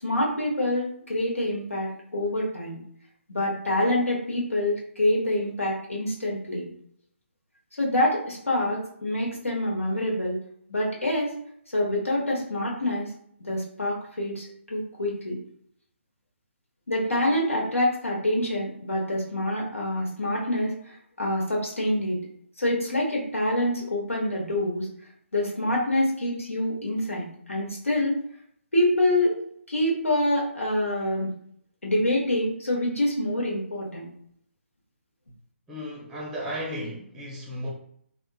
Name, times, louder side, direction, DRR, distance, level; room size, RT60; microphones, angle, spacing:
voice 1, 0.0-2.8 3.3-6.7 7.8-10.4 10.7-11.3 11.7-13.1 13.4-15.3 16.9-22.2 22.6-24.9 25.3-28.2 28.7-29.4 29.7-31.3 31.8-34.1, left 1 dB, 80° left, -3 dB, 1.2 m, -26 dB
voice 2, 35.7-37.7, equal, 5° right, -3 dB, 0.7 m, -34 dB
3.5 x 2.5 x 2.3 m, 0.65 s
figure-of-eight pair, 140°, 7 cm